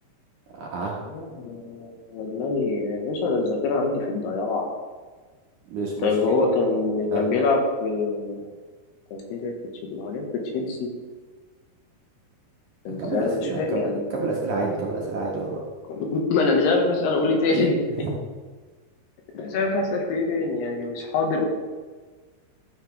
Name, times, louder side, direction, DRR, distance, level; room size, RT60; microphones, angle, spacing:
voice 1, 0.5-0.9 5.7-6.1 7.1-7.2 13.0-15.6 18.0-18.1, right 3 dB, 65° right, -3 dB, 2.2 m, -28 dB
voice 2, 1.1-4.7 6.0-8.4 9.1-9.5 9.8-10.2 10.5-10.9 12.8-14.2 15.9-18.0 19.3-21.5, left 3 dB, 80° left, 1 dB, 3.3 m, -25 dB
13.5 x 7.1 x 3.3 m, 1.4 s
omnidirectional pair, 4.8 m